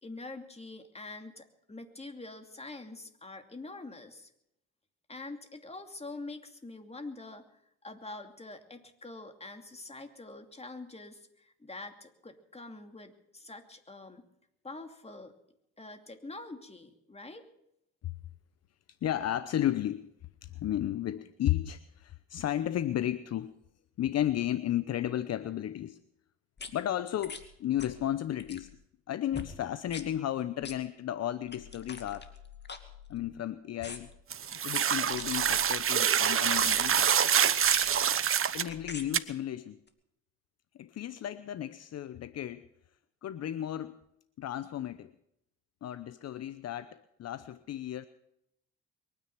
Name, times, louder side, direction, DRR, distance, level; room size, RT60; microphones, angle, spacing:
voice 1, 0.0-4.3 5.1-14.3 14.6-15.3 15.8-17.4, left 2 dB, 20° left, 6 dB, 2.7 m, -45 dB
voice 2, 19.0-20.1 20.4-23.5 24.0-26.0 26.7-28.7 29.1-32.3 33.1-34.1 34.6-37.1 38.5-39.8 40.8-42.6 43.2-44.0 44.4-45.1 45.8-48.1, left 12 dB, 60° left, 14 dB, 0.8 m, -33 dB
sound 1, 26.6-26.7 27.2-27.5 27.8-28.0 28.3-28.7 29.3-29.5 29.9-30.1 30.6-30.8 31.5-33.4 33.8-34.2 34.9-35.9 36.6-37.0 37.6-38.0 38.7-39.1 39.9-40.0, left 5 dB, 35° left, 2.4 m, -44 dB
sound 2, 34.3-38.7 39.1-39.2, right 8 dB, 45° right, 1.0 m, -26 dB
23.0 x 9.9 x 5.9 m, 0.78 s
supercardioid pair, 60°, 30 cm